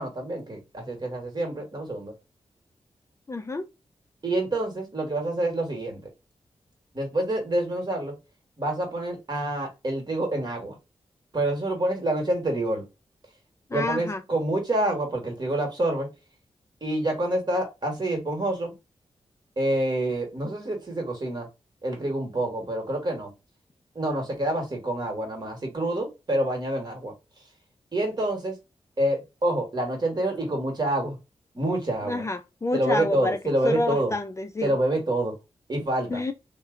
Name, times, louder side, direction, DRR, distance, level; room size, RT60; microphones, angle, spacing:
voice 1, 0.0-2.1 4.2-6.0 6.9-8.1 8.6-10.8 11.3-12.8 13.7-16.1 16.8-18.7 19.6-21.5 21.8-23.3 23.9-27.1 27.9-28.6 29.0-31.2 31.5-32.2 32.7-34.1 34.6-35.3 35.7-36.2, right 1 dB, 40° right, 1.5 m, -27 dB
voice 2, 3.3-3.6 13.7-14.2 32.1-33.4 33.6-34.7 36.1-36.3, left 2 dB, 25° left, 0.4 m, -28 dB
2.7 x 2.1 x 3.7 m
cardioid pair, 70°, 11 cm